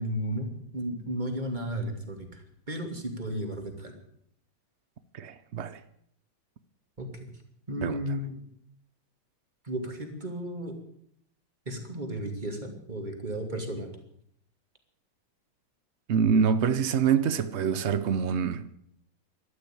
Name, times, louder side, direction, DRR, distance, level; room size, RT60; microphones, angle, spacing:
voice 1, 0.0-3.9 7.0-7.1 7.7-8.4 9.6-10.7 11.7-13.9, equal, 20° right, 2.7 m, -34 dB
voice 2, 5.1-5.8 7.8-8.0 16.1-18.7, right 7 dB, 85° right, 0.6 m, -25 dB
13.0 x 12.0 x 8.8 m
omnidirectional pair, 2.3 m